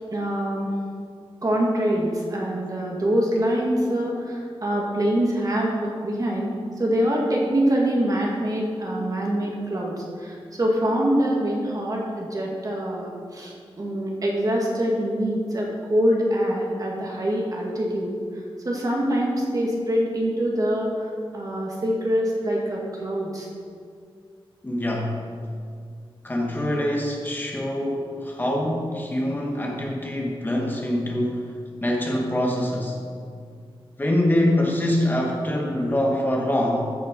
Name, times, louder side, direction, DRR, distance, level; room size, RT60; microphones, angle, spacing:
voice 1, 0.1-0.7 1.4-6.5 6.8-18.1 18.7-20.9 21.3-23.5, equal, 40° right, -2 dB, 1.8 m, -24 dB
voice 2, 24.6-25.2 26.2-33.0 34.0-36.9, left 1 dB, 20° left, -1 dB, 1.4 m, -24 dB
14.0 x 5.6 x 5.2 m, 2.2 s
wide cardioid pair, 150°, 10 cm